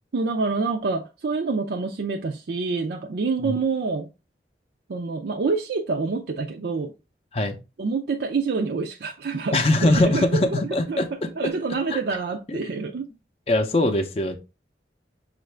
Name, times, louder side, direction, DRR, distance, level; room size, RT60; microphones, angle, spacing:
voice 1, 0.1-4.1 4.9-6.9 7.8-11.0 11.4-13.1, right 4 dB, 65° right, 0.4 m, -27 dB
voice 2, 9.5-11.1 11.9-12.0 12.5-12.6 13.5-14.4, left 2 dB, 35° left, 0.5 m, -21 dB
6.3 x 2.5 x 3.2 m
head